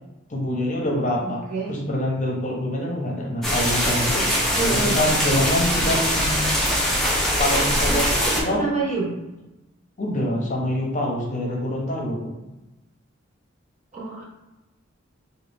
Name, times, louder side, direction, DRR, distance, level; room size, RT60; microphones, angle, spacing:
voice 1, 0.3-1.4 1.7-6.5 7.4-8.7 10.0-12.3, left 1 dB, 40° left, -2 dB, 0.7 m, -25 dB
voice 2, 1.2-1.7 4.6-5.0 7.9-9.2 13.9-14.2, right 3 dB, 35° right, -5 dB, 1.1 m, -27 dB
sound 1, 3.4-8.4, equal, ahead, 0.7 m, -22 dB
3.6 x 2.3 x 3.3 m, 1.0 s
head